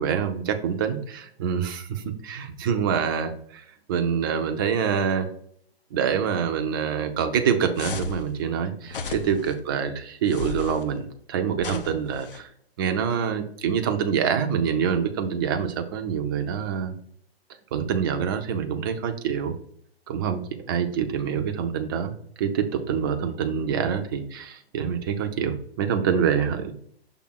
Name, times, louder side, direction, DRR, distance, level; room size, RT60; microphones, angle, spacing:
voice 1, 0.0-5.3 5.9-12.5 12.8-16.9 17.7-19.5 20.1-26.8, right 7 dB, 20° right, 6 dB, 0.5 m, -26 dB
sound 1, 7.8-8.3 8.9-9.5 10.3-10.8 11.6-12.4, left 5 dB, 55° left, 0.9 m, -34 dB
6.1 x 3.4 x 5.9 m, 0.64 s
figure-of-eight pair, 130°, 32 cm